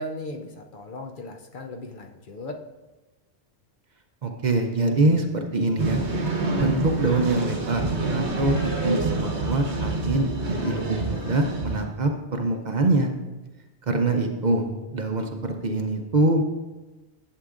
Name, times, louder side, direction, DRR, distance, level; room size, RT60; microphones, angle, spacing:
voice 1, 0.0-2.7, left 1 dB, 55° left, 3 dB, 0.7 m, -37 dB
voice 2, 4.2-6.0 6.5-7.8 8.1-13.1 13.9-14.7 14.9-16.4, right 2 dB, 50° right, 4 dB, 0.8 m, -24 dB
sound 1, 5.8-11.8, right 3 dB, 85° right, 1.5 m, -27 dB
11.5 x 7.5 x 2.5 m, 1.1 s
omnidirectional pair, 1.1 m